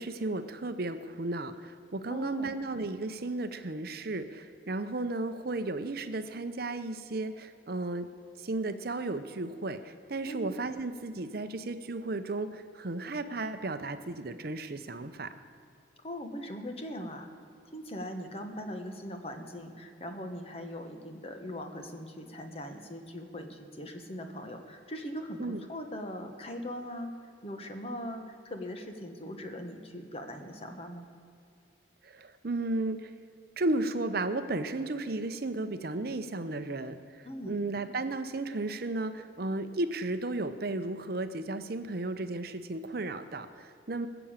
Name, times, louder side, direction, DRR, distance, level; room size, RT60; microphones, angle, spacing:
voice 1, 0.0-8.1 8.4-15.3 25.4-25.6 32.0-33.1 33.6-44.1, right 2 dB, 50° right, 10 dB, 0.7 m, -34 dB
voice 2, 2.1-2.5 10.3-10.5 16.0-17.3 17.7-27.1 27.4-31.1 37.2-37.6, equal, 30° left, 5 dB, 1.3 m, -40 dB
20.5 x 7.0 x 8.8 m, 2.6 s
head